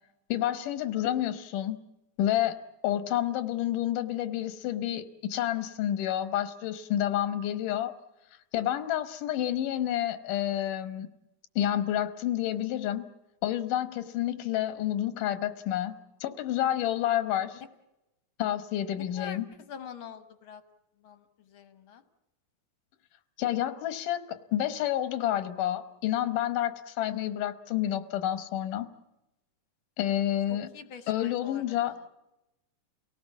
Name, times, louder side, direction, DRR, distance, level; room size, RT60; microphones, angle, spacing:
voice 1, 0.3-1.8 2.2-2.6 2.8-7.9 8.5-11.1 11.6-13.0 13.4-17.6 18.4-19.4 23.4-28.9 30.0-30.7 31.1-31.9, left 12 dB, 90° left, 12 dB, 2.7 m, -29 dB
voice 2, 19.0-19.4 19.7-20.6 21.0-22.0 30.5-32.1, left 8 dB, 55° left, 11 dB, 1.6 m, -45 dB
29.0 x 18.0 x 7.2 m, 0.94 s
omnidirectional pair, 3.6 m